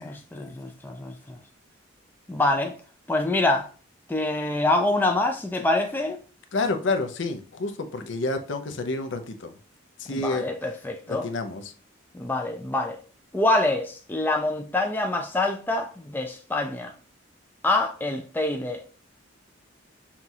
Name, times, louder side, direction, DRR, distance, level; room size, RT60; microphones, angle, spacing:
voice 1, 0.0-1.4 2.3-2.7 3.1-3.7 4.1-6.2 10.1-11.3 12.1-13.0 13.3-16.9 17.6-18.8, left 2 dB, 10° left, 0.3 m, -25 dB
voice 2, 6.5-9.5 10.0-10.5 11.1-11.7, left 3 dB, 65° left, 0.5 m, -29 dB
5.8 x 2.4 x 2.7 m
head